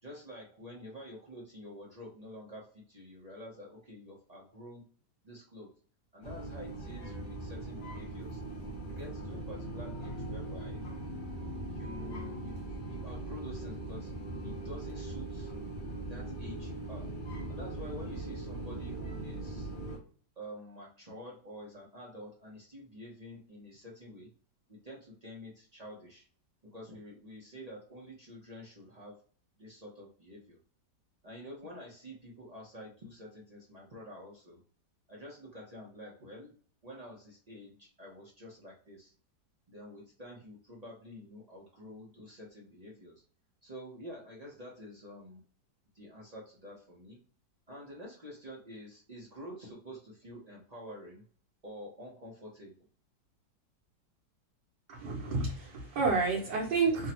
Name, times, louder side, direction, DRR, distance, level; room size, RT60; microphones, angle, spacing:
voice 1, 0.0-4.8 5.2-5.7 6.1-8.4 8.8-10.8 11.7-14.1 14.4-15.5 16.1-17.1 17.5-19.7 20.4-24.3 24.7-26.2 26.6-29.2 29.6-30.6 31.2-34.6 35.1-36.5 36.8-39.1 39.7-43.2 43.6-45.4 45.9-47.2 47.7-51.2 51.6-52.8, equal, 55° right, -4 dB, 0.4 m, -48 dB
sound 1, 6.2-20.0, right 1 dB, 50° left, 0.6 m, -40 dB
voice 2, 54.9-57.1, right 4 dB, 85° right, -4 dB, 1.5 m, -30 dB
3.6 x 2.0 x 2.8 m, 0.43 s
omnidirectional pair, 1.8 m